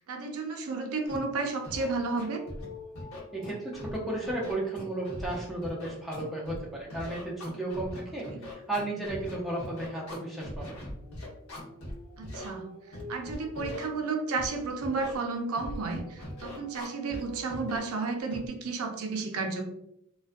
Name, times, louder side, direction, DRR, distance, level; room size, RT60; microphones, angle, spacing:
voice 1, 0.1-2.4 8.3-8.4 12.2-12.7 13.1-19.6, right 3 dB, 80° right, 5 dB, 0.4 m, -32 dB
Scratching (performance technique), 1.1-1.2 1.6-1.8 2.2-2.6 3.0-4.0 4.2-6.6 6.9-11.9 12.2-12.5 12.9-13.8 14.4-14.5 14.8-15.2 15.6-17.2 17.5-17.8 18.3-18.5, left 1 dB, 85° left, 0.8 m, -40 dB
sound 1, 1.6-5.8 6.2-6.6 9.0-18.2, right 1 dB, 35° left, 1.0 m, -48 dB
voice 2, 3.3-10.8, right 2 dB, ahead, -5 dB, 0.5 m, -34 dB
2.3 x 2.2 x 2.5 m, 0.78 s
head